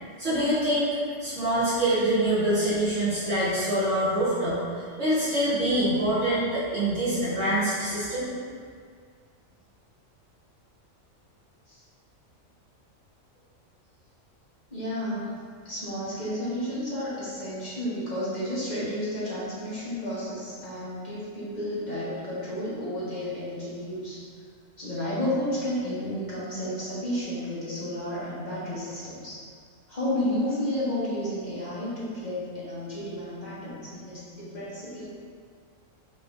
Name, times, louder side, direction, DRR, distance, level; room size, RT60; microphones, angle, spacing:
voice 1, 0.2-0.9 1.2-4.6 5.0-8.3, right 1 dB, 65° right, -13 dB, 1.8 m, -25 dB
voice 2, 14.7-15.3 15.6-24.2 24.8-29.4 29.9-35.1, left 1 dB, 35° left, -9 dB, 1.2 m, -32 dB
6.0 x 3.3 x 2.5 m, 2.1 s
omnidirectional pair, 1.4 m